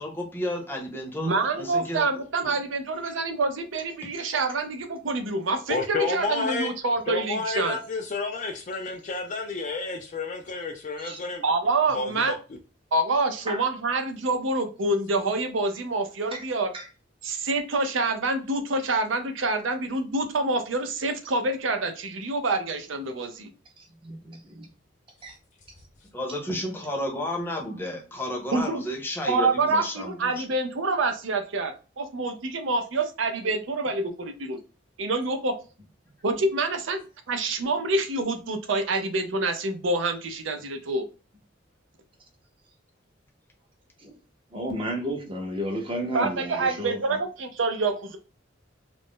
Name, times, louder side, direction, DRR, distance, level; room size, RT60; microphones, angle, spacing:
voice 1, 0.0-2.1 2.4-2.5 26.1-30.4, left 1 dB, 10° left, 0.7 m, -32 dB
voice 2, 1.2-7.8 11.4-12.3 12.9-16.7 17.2-23.5 28.5-28.8 29.3-34.6 35.0-35.5 36.2-37.0 37.3-41.0 46.1-48.2, right 2 dB, 75° right, 0.5 m, -27 dB
voice 3, 5.7-6.7 7.1-11.4 11.9-12.3, left 3 dB, 40° left, 0.4 m, -30 dB
voice 4, 24.0-24.7 25.2-25.3 44.0-44.1 44.5-47.2, equal, 25° right, 0.8 m, -32 dB
2.5 x 2.0 x 3.6 m
head